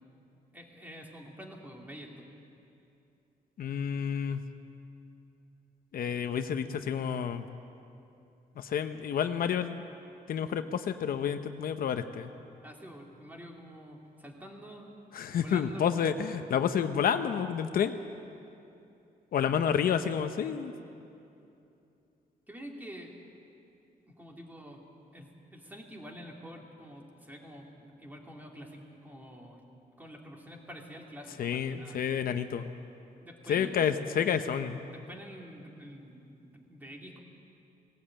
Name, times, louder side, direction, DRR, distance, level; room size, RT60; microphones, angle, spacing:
voice 1, 0.5-2.3 12.6-16.1 16.7-16.8 22.5-23.1 24.2-24.8 25.1-29.6 30.0-32.0 33.2-33.7 34.9-37.2, equal, 10° right, 0 dB, 2.7 m, -47 dB
voice 2, 3.6-4.4 5.9-7.4 8.6-9.8 10.3-12.3 15.1-17.9 19.3-20.7 31.4-32.7 33.5-34.8, left 8 dB, 70° left, 8 dB, 0.8 m, -29 dB
18.5 x 17.5 x 8.8 m, 2.7 s
wide cardioid pair, 145°, 16 cm